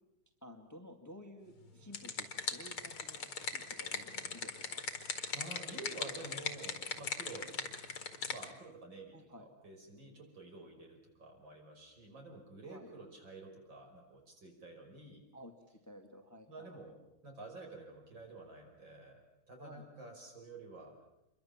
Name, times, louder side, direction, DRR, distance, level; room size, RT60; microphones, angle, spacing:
voice 1, 0.4-3.3 3.5-4.8 9.1-9.5 12.7-12.9 15.3-16.7 19.6-19.9, equal, 10° left, 4 dB, 1.8 m, -54 dB
sound 1, 1.6-8.5, left 5 dB, 90° left, 2.9 m, -40 dB
voice 2, 5.3-7.7 8.3-15.2 16.5-21.0, right 2 dB, 60° right, 1 dB, 6.2 m, -50 dB
28.0 x 23.0 x 7.3 m, 0.90 s
omnidirectional pair, 2.3 m